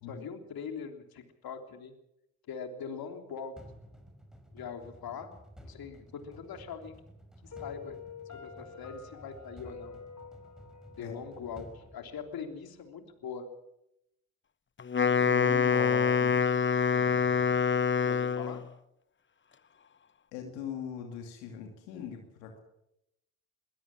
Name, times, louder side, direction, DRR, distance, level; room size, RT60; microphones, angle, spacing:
voice 1, 0.0-1.9 2.5-3.5 4.5-6.9 7.4-8.0 8.3-10.0 10.9-13.5 18.0-18.7, left 6 dB, 65° left, 5 dB, 3.3 m, -42 dB
sound 1, 3.6-12.8, equal, ahead, 5.5 m, -53 dB
Piano, 7.5-12.5, left 6 dB, 45° left, 3.6 m, -48 dB
Wind instrument woodwind instrument, 14.8-18.7, left 6 dB, 30° left, 1.0 m, -26 dB
voice 2, 15.1-16.4 20.3-22.6, left 7 dB, 85° left, 3 dB, 2.6 m, -41 dB
22.0 x 16.5 x 7.4 m, 0.83 s
hypercardioid pair, 50°, 40 cm